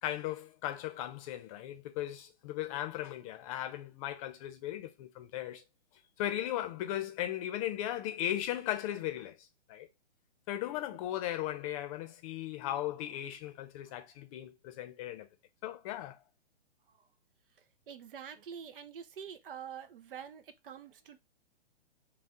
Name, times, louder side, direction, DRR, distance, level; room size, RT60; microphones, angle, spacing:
voice 1, 0.0-5.6 6.2-9.4 9.7-9.9 10.5-15.3 15.6-16.2, left 12 dB, 30° left, 0.8 m, -37 dB
voice 2, 17.6-21.2, right 8 dB, 50° right, 0.8 m, -47 dB
5.4 x 2.4 x 3.7 m
hypercardioid pair, 135°, 36 cm